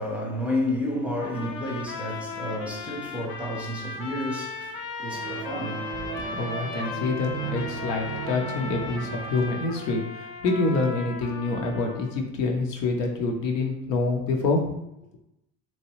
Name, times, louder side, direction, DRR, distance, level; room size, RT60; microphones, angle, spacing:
voice 1, 0.0-6.1, left 1 dB, 5° right, 0.6 m, -31 dB
sound 1, 1.2-12.2, left 5 dB, 55° left, 0.6 m, -37 dB
sound 2, 5.1-9.7, right 7 dB, 45° right, 0.4 m, -36 dB
voice 2, 6.4-14.9, left 3 dB, 85° left, 0.8 m, -27 dB
2.9 x 2.3 x 3.0 m
hypercardioid pair, 80°, 48 cm